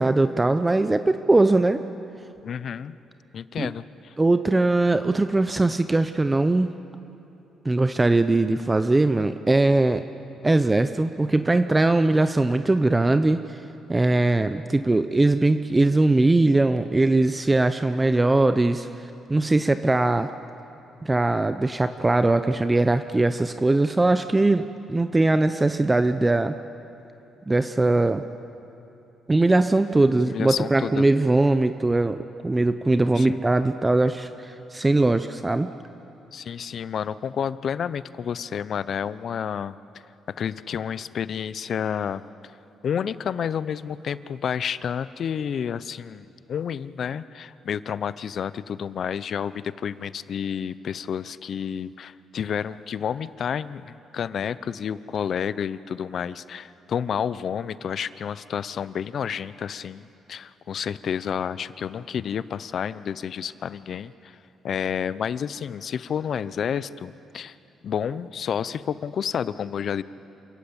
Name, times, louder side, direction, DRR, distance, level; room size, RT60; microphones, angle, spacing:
voice 1, 0.0-1.8 3.6-3.7 4.2-6.7 7.6-10.0 10.4-13.6 13.9-20.3 21.0-26.6 27.5-28.2 29.3-32.2 32.4-35.7, right 2 dB, 20° right, 10 dB, 0.7 m, -21 dB
voice 2, 2.4-2.9 3.3-4.1 30.2-31.0 33.0-33.4 36.3-39.7 40.3-42.2 42.8-64.4 64.6-67.5 67.8-70.0, left 8 dB, 60° left, 16 dB, 0.6 m, -30 dB
27.5 x 14.5 x 8.7 m, 2.8 s
cardioid pair, 90°, 0 cm